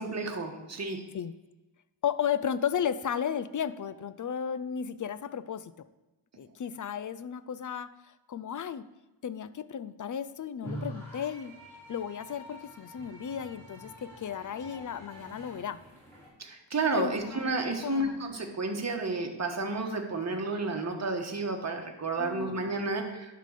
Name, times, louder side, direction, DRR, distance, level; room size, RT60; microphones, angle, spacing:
voice 1, 0.0-1.0 16.4-23.3, right 3 dB, 35° right, 3 dB, 1.3 m, -31 dB
voice 2, 2.0-5.7 6.4-7.9 8.3-8.8 9.2-11.5 11.9-15.8 17.0-18.2 22.2-22.9, left 8 dB, 45° left, 15 dB, 0.4 m, -34 dB
sound 1, 10.6-16.3, right 1 dB, 5° left, 3.6 m, -45 dB
11.0 x 3.8 x 6.6 m, 1.1 s
wide cardioid pair, 105°, 47 cm